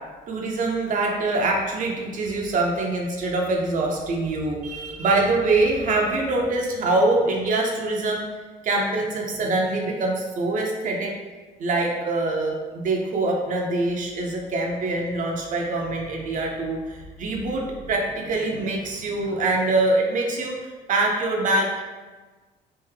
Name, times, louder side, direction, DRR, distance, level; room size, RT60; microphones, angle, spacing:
voice 1, 0.3-8.2 8.6-11.1 11.6-20.6 20.9-21.8, right 2 dB, 50° right, 0 dB, 0.6 m, -24 dB
3.4 x 2.6 x 3.2 m, 1.3 s
cardioid pair, 110°, 17 cm